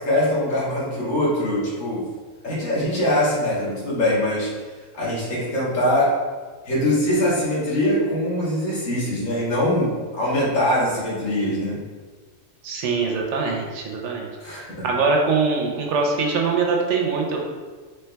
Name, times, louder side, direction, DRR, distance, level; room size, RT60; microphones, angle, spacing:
voice 1, 0.0-2.0 2.4-4.5 4.9-6.1 6.7-11.8 14.4-14.9, left 1 dB, 70° left, -7 dB, 1.6 m, -22 dB
voice 2, 12.6-17.4, right 4 dB, 70° right, 1 dB, 0.8 m, -23 dB
4.4 x 3.4 x 2.2 m, 1.4 s
omnidirectional pair, 1.4 m